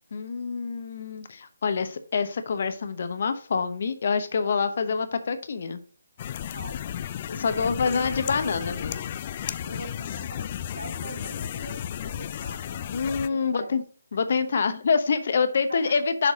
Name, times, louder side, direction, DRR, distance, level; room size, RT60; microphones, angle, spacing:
voice 1, 0.1-5.8 7.3-9.2 12.9-13.8 14.1-16.3, left 5 dB, 50° left, 10 dB, 0.9 m, -26 dB
sound 1, 6.2-13.3, left 10 dB, 35° left, 0.4 m, -34 dB
voice 2, 6.5-7.1 7.4-8.4 9.6-12.9 13.3-13.7 15.7-16.0, right 2 dB, 70° right, 1 dB, 2.5 m, -42 dB
6.6 x 4.5 x 4.9 m, 0.41 s
figure-of-eight pair, 150°, 0 cm